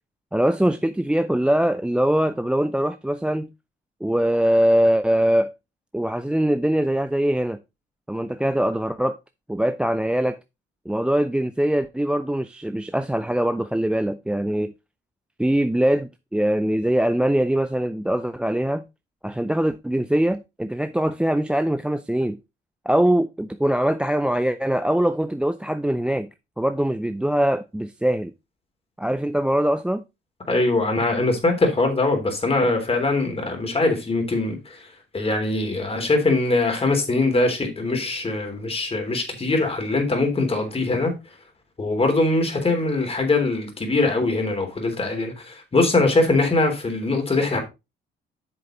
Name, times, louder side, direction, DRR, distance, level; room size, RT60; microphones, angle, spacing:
voice 1, 0.3-3.5 4.0-5.5 5.9-7.6 8.1-9.2 9.5-10.4 10.9-14.7 15.4-18.8 19.2-22.4 22.9-26.3 26.6-28.3 29.0-30.0, right 1 dB, 5° right, 0.5 m, -22 dB
voice 2, 30.5-34.6 35.1-41.1 41.8-47.6, left 2 dB, 30° left, 3.4 m, -22 dB
8.0 x 6.8 x 3.9 m
cardioid pair, 90°, 20 cm